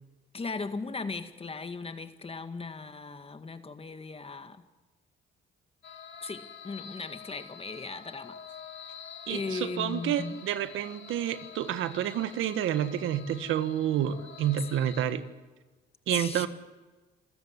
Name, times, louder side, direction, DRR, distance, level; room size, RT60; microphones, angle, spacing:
voice 1, 0.3-4.6 6.2-8.4 9.3-10.4 14.6-14.7 16.1-16.5, left 4 dB, 30° left, 2.0 m, -37 dB
sound 1, 5.8-15.1, left 7 dB, 70° left, 2.5 m, -47 dB
voice 2, 9.3-15.2 16.1-16.5, right 10 dB, 85° right, 1.5 m, -29 dB
28.0 x 14.5 x 8.2 m
cardioid pair, 90°, 20 cm